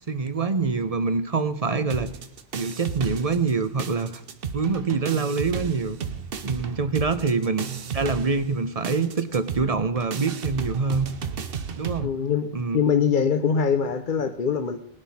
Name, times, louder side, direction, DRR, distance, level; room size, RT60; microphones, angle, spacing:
voice 1, 0.1-2.1 2.5-4.2 4.5-6.0 6.4-7.7 7.9-11.1 11.8-12.1 12.5-12.8, right 4 dB, 40° right, 11 dB, 0.8 m, -25 dB
sound 1, 1.9-3.5 3.8-12.0, right 6 dB, 65° right, 1.1 m, -33 dB
voice 2, 12.0-14.8, left 6 dB, 55° left, 8 dB, 0.9 m, -23 dB
19.5 x 9.8 x 4.2 m, 0.73 s
omnidirectional pair, 1.0 m